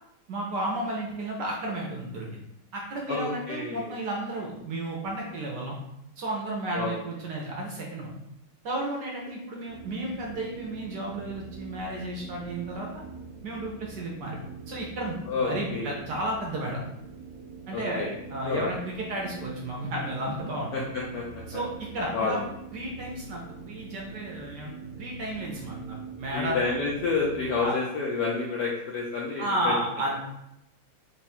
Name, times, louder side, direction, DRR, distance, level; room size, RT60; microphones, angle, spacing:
voice 1, 0.3-2.4 2.7-5.8 6.2-8.1 8.6-12.9 13.4-14.4 14.7-16.8 17.7-18.0 18.3-20.8 21.5-22.4 22.7-24.7 25.0-26.6 27.6-27.7 29.4-30.2, right 1 dB, 65° right, -2 dB, 1.1 m, -33 dB
voice 2, 3.1-4.0 6.7-7.0 15.3-15.9 17.7-18.1 18.4-18.8 20.7-21.6 22.1-22.4 26.3-29.7, left 4 dB, 75° left, -3 dB, 0.9 m, -29 dB
sound 1, 9.7-27.7, right 4 dB, 90° right, 0.8 m, -44 dB
3.6 x 2.3 x 4.2 m, 0.81 s
omnidirectional pair, 2.3 m